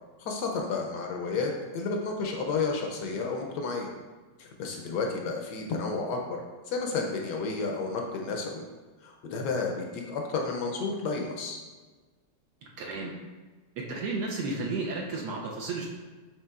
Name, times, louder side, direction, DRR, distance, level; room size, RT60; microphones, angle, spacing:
voice 1, 0.2-3.9 4.4-6.4 6.7-8.6 9.0-11.6, left 4 dB, 70° left, 1 dB, 1.1 m, -31 dB
voice 2, 12.8-13.1 13.8-15.9, right 3 dB, 75° right, -1 dB, 1.0 m, -33 dB
7.3 x 3.1 x 2.3 m, 1.3 s
omnidirectional pair, 2.1 m